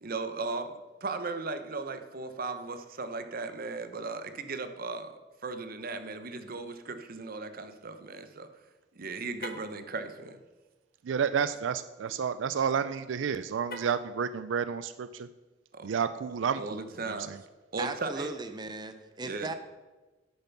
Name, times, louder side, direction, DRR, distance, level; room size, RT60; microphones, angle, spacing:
voice 1, 0.0-8.5 8.9-10.4 15.7-15.9 16.6-17.3 17.7-18.3 19.2-19.5, right 3 dB, 50° right, 9 dB, 0.8 m, -37 dB
Car, 9.3-9.8 13.6-14.1, left 1 dB, 55° left, 1.2 m, -42 dB
voice 2, 11.0-15.3 15.8-16.8 17.1-17.4, right 7 dB, 80° right, 13 dB, 0.4 m, -30 dB
voice 3, 17.8-19.5, right 3 dB, 25° right, 8 dB, 0.7 m, -37 dB
9.8 x 6.8 x 5.8 m, 1.2 s
head